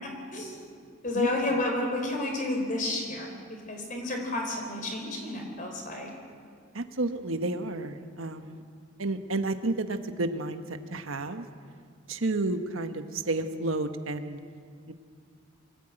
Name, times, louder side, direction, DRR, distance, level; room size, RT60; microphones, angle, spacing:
voice 1, 0.0-0.7 1.0-6.1, left 2 dB, 40° left, 2 dB, 4.2 m, -31 dB
voice 2, 6.7-8.6 9.0-11.4 12.1-14.4 14.9-15.0, right 2 dB, 80° right, 8 dB, 1.2 m, -31 dB
23.5 x 14.5 x 9.0 m, 2.1 s
head